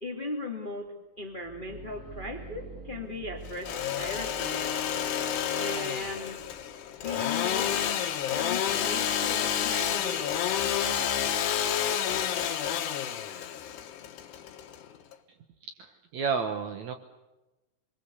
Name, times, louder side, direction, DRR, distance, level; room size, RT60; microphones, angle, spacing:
voice 1, 0.0-4.7 5.5-6.4 7.0-7.8 8.3-10.4, left 2 dB, 40° left, 4 dB, 0.7 m, -37 dB
sound 1, 1.2-12.8, right 2 dB, 20° right, 2.3 m, -50 dB
Engine / Sawing, 3.5-15.1, left 9 dB, 75° left, 3.5 m, -29 dB
voice 2, 15.8-16.9, right 5 dB, 75° right, 7 dB, 1.7 m, -31 dB
26.0 x 22.5 x 8.2 m, 1.0 s
omnidirectional pair, 5.0 m